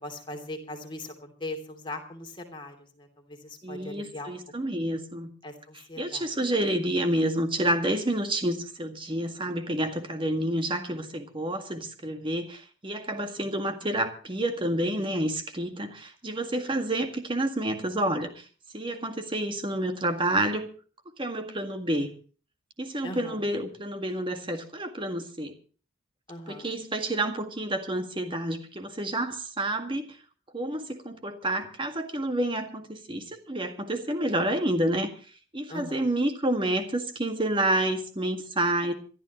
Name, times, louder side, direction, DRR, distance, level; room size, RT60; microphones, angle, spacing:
voice 1, 0.0-4.3 5.4-6.3 23.0-23.4 26.3-26.7 35.7-36.0, left 1 dB, 25° left, 3.0 m, -40 dB
voice 2, 3.6-5.3 6.0-18.4 18.7-20.7 21.2-22.1 22.8-25.5 26.5-30.1 30.5-35.1 35.5-38.9, right 1 dB, 25° right, 1.8 m, -29 dB
26.5 x 12.5 x 3.0 m
head